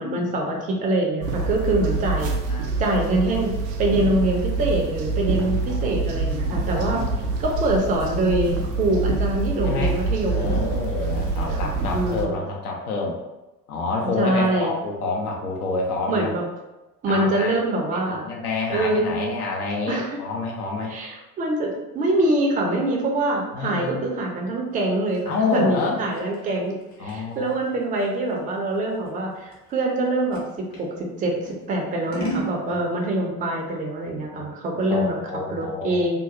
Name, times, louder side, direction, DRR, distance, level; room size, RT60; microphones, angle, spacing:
voice 1, 0.0-2.3 2.8-7.0 7.4-10.6 11.2-12.3 14.2-14.7 16.1-16.4 17.0-18.2 18.7-19.3 19.9-20.2 20.9-26.7 27.0-35.1 35.5-36.2, right 1 dB, 15° right, 0 dB, 0.5 m, -24 dB
sound 1, 1.2-12.3, right 3 dB, 75° right, 0.6 m, -26 dB
voice 2, 2.3-2.7 5.6-7.3 9.6-9.9 10.3-13.2 13.7-16.3 17.1-17.6 17.9-20.9 23.5-24.0 25.3-26.0 27.0-27.6 34.3-34.5 34.9-36.0, left 3 dB, 65° left, 0 dB, 0.8 m, -28 dB
Scissors, 24.7-30.9 31.4-32.6, right 1 dB, 45° left, 1.1 m, -36 dB
2.9 x 2.3 x 2.5 m, 1.0 s
figure-of-eight pair, 65°, 48 cm